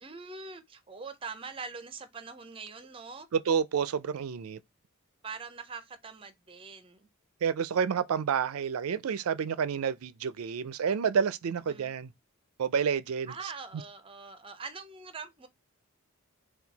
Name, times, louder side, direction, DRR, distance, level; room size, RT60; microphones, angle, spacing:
voice 1, 0.0-3.3 5.2-7.1 11.7-11.9 13.3-15.5, right 4 dB, 25° right, 0.5 m, -43 dB
voice 2, 3.3-4.6 7.4-12.1 12.6-13.3, right 7 dB, 85° right, 0.4 m, -29 dB
4.4 x 2.3 x 3.9 m
head